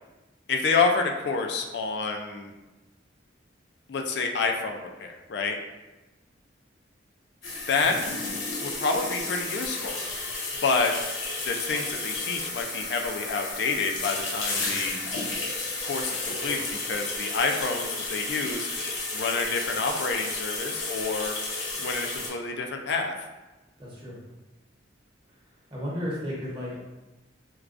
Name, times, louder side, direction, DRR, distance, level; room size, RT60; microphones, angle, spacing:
voice 1, 0.5-2.5 3.9-5.6 7.7-8.0 8.6-10.0 10.6-10.9 11.4-15.0 15.8-18.7 19.1-21.3 21.7-23.1, left 4 dB, 60° left, 3 dB, 0.4 m, -28 dB
sound 1, 7.4-22.3, left 3 dB, 85° left, 0.8 m, -32 dB
voice 2, 23.8-24.2 25.7-26.7, equal, 25° right, -6 dB, 0.9 m, -33 dB
4.5 x 2.3 x 2.5 m, 1.1 s
head